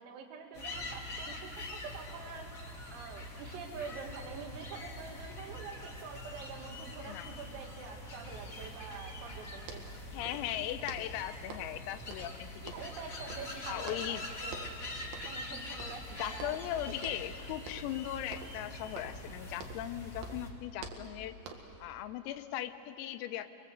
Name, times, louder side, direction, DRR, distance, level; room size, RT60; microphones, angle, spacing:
voice 1, 0.0-9.8 12.7-14.7 15.2-17.1, right 5 dB, 80° right, 3 dB, 4.8 m, -46 dB
sound 1, 0.5-20.5, left 1 dB, 55° left, 0.9 m, -44 dB
voice 2, 7.0-7.4 10.1-12.7 13.7-14.3 16.2-21.4 21.8-23.5, left 12 dB, 85° left, 10 dB, 3.5 m, -38 dB
sound 2, 9.6-10.6 10.9-11.8 12.1-13.0 13.3-14.2 14.5-14.8 15.1-15.5 15.8-16.7 17.0-17.3 17.7-18.0 18.3-19.9 20.2-21.8, right 4 dB, 60° right, 3.3 m, -48 dB
28.0 x 22.5 x 8.0 m, 2.9 s
omnidirectional pair, 6.0 m